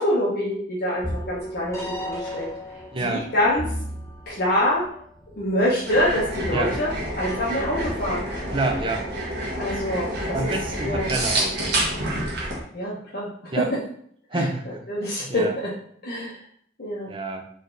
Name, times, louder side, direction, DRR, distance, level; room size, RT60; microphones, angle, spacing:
voice 1, 0.0-2.4 3.0-3.6 4.3-4.8 5.4-6.9 7.2-8.2 9.6-10.5 10.8-11.1 12.7-13.3 13.6-13.7 14.3-14.4 14.9-15.7 16.0-16.4 16.8-17.1, left 1 dB, 60° left, -7 dB, 1.1 m, -25 dB
sound 1, 1.0-9.3, left 1 dB, 15° left, 1.0 m, -36 dB
voice 2, 2.9-3.3 6.5-6.8 8.5-9.1 10.3-11.7 13.5-13.7 14.3-14.8 15.2-15.5 17.1-17.4, right 2 dB, 30° right, 4 dB, 0.7 m, -28 dB
sound 2, 5.9-12.6, right 1 dB, 60° right, 1.2 m, -28 dB
3.9 x 3.3 x 4.0 m, 0.63 s
head